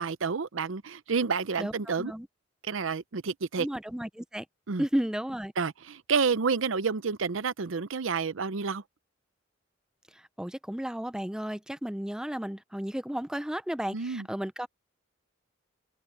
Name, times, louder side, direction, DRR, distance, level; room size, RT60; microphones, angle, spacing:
voice 1, 0.0-2.1 2.6-3.7 4.7-4.8 5.6-8.8 13.9-14.3, right 5 dB, 85° right, 0.7 m, -29 dB
voice 2, 3.6-4.5 4.8-5.5 10.1-14.7, equal, 5° right, 0.5 m, -33 dB
head